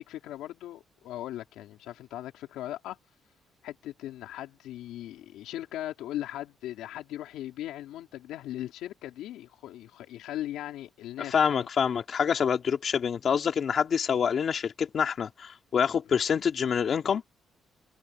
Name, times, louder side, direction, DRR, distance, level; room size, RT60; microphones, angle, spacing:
voice 1, 0.0-3.0 3.6-11.4, left 13 dB, 90° left, 3.9 m, -38 dB
voice 2, 11.2-17.2, left 7 dB, 55° left, 2.4 m, -26 dB
cardioid pair, 90°, 0 cm